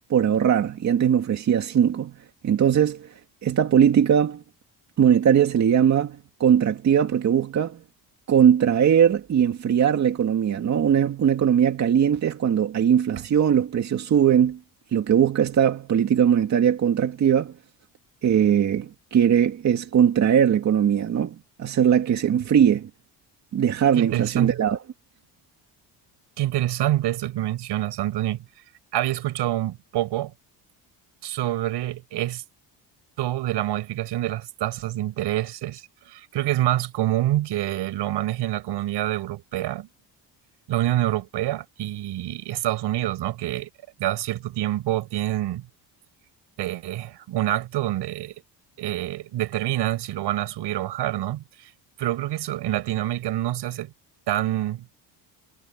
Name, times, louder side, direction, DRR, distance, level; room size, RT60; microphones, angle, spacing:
voice 1, 0.1-2.1 2.4-3.1 3.4-4.4 5.0-7.8 8.3-14.6 14.9-17.5 18.2-22.9 23.5-24.8, right 8 dB, 40° right, 2.3 m, -20 dB
voice 2, 24.0-24.6 26.4-28.4 28.9-30.3 31.2-32.4 33.2-39.9 40.7-43.7 44.0-45.7 46.6-48.3 48.8-51.7 52.0-53.9 54.3-54.9, right 14 dB, 70° right, 5.5 m, -26 dB
cardioid pair, 175°, 42 cm